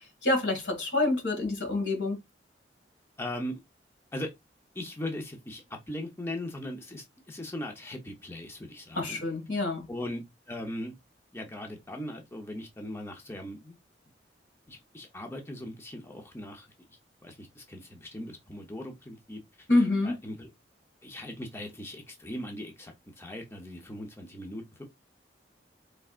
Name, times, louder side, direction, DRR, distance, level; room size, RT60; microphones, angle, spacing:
voice 1, 0.2-2.2 9.0-9.9 19.7-20.1, left 2 dB, 85° left, 1.8 m, -27 dB
voice 2, 3.2-3.6 4.1-4.3 4.7-9.2 9.9-10.9 11.3-13.8 14.7-20.5 21.0-24.8, left 1 dB, 15° left, 0.7 m, -39 dB
4.7 x 3.3 x 2.4 m
head